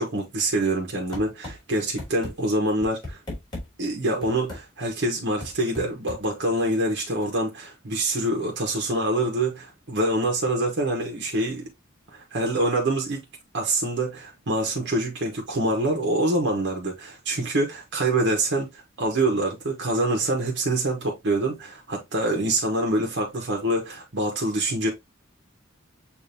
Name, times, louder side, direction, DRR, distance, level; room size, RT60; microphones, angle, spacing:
voice 1, 0.0-3.2 3.8-11.7 12.1-13.2 13.5-24.9, right 1 dB, 65° right, 1.0 m, -25 dB
sound 1, 1.1-1.6 2.0-2.3 2.8-3.7 4.2-4.6 5.4-6.2, left 1 dB, 25° left, 2.6 m, -35 dB
6.7 x 2.6 x 2.7 m
head